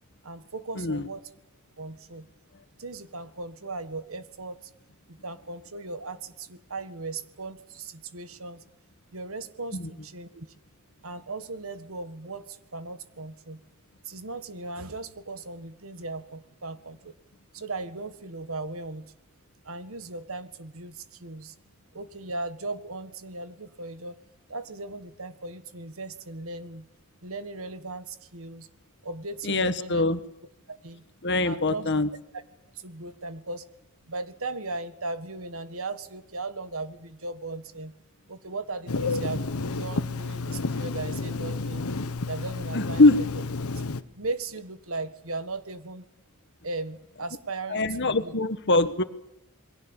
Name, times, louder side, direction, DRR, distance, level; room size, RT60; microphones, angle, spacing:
voice 1, 0.2-1.2 1.8-2.3 2.8-4.7 5.1-8.6 9.1-10.5 11.0-13.6 14.0-17.1 17.5-19.1 19.6-21.6 21.9-24.2 24.5-26.9 27.2-28.7 29.0-30.0 30.7-31.1 31.4-31.9 32.7-33.7 34.1-37.9 38.3-41.9 42.3-43.3 44.2-46.1 46.6-48.3, right 3 dB, 70° right, 11 dB, 1.7 m, -37 dB
voice 2, 0.8-1.1 9.7-9.9 29.4-30.2 31.2-32.1 42.7-43.2 47.7-49.0, left 2 dB, 55° left, 11 dB, 1.5 m, -23 dB
Telephone, 38.9-44.0, left 3 dB, 90° left, 1.3 m, -31 dB
28.0 x 22.0 x 7.3 m, 0.80 s
head